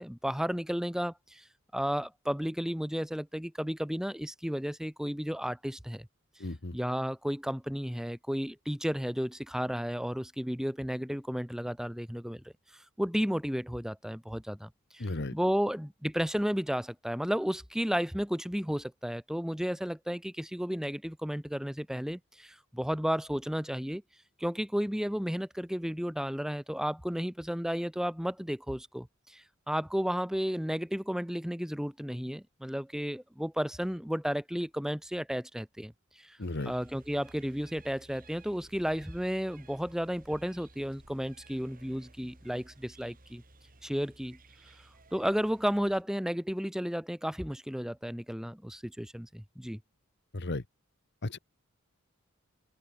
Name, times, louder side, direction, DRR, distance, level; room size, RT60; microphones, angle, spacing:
voice 1, 0.0-1.4 1.7-6.1 6.7-12.4 13.0-15.1 15.3-24.0 24.4-29.1 29.3-35.9 36.2-36.4 36.7-43.4 43.8-44.4 45.1-49.8, equal, 5° right, 1.3 m, -33 dB
voice 2, 6.4-6.7 15.0-15.3 36.4-36.7 50.3-50.6 51.2-51.4, left 2 dB, 55° left, 1.3 m, -34 dB
sound 1, 36.4-46.0, right 2 dB, 45° right, 4.3 m, -56 dB
open air
head